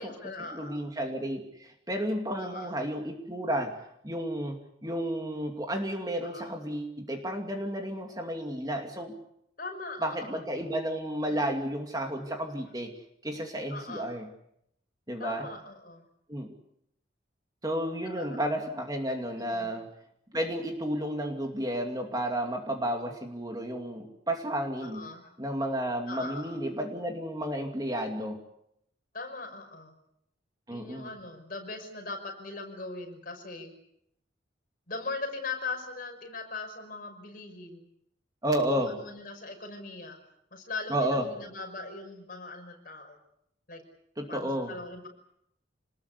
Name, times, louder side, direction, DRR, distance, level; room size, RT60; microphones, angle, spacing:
voice 1, 0.0-0.8 2.3-2.7 6.2-6.6 9.6-10.5 13.7-14.1 15.2-16.1 18.0-18.5 19.4-19.7 24.8-25.3 26.1-26.6 29.1-30.0 30.7-33.7 34.9-37.9 38.6-40.2 40.5-43.2 43.7-43.8 44.3-45.1, left 3 dB, 45° left, 4 dB, 5.8 m, -40 dB
voice 2, 0.5-3.8 4.0-9.1 10.0-12.9 13.2-14.3 15.1-15.5 16.3-16.5 17.6-19.9 20.3-25.1 25.4-28.4 30.7-31.1 38.4-38.9 40.9-41.3 44.2-44.7, right 1 dB, 20° right, 3 dB, 2.6 m, -32 dB
26.5 x 20.5 x 8.3 m, 0.77 s
head